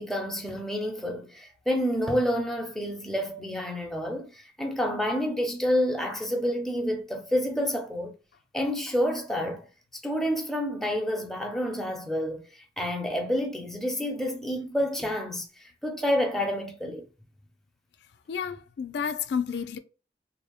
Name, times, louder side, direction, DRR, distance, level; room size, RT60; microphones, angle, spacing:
voice 1, 0.0-8.1 8.5-9.7 10.0-12.4 12.8-17.0, equal, ahead, 0.5 m, -29 dB
voice 2, 18.3-19.8, left 7 dB, 65° left, 0.3 m, -31 dB
2.6 x 2.0 x 2.8 m
head